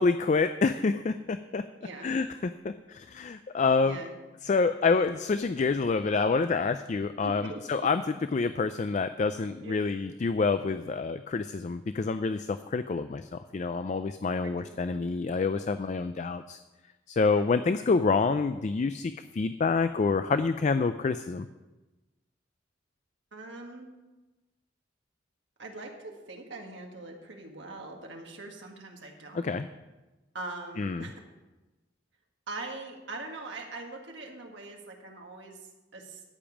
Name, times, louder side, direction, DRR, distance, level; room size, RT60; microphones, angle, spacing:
voice 1, 0.0-1.6 2.0-4.0 4.4-16.6 17.1-21.5 29.3-29.7 30.8-31.1, left 4 dB, 40° left, 11 dB, 0.3 m, -27 dB
voice 2, 3.8-4.1 7.2-7.9 9.6-9.8 14.6-14.7 17.2-17.5 23.3-23.9 25.6-29.5 30.3-31.1 32.5-35.6 35.9-36.2, right 2 dB, 70° right, 1 dB, 1.8 m, -42 dB
13.5 x 5.2 x 7.2 m, 1.1 s
head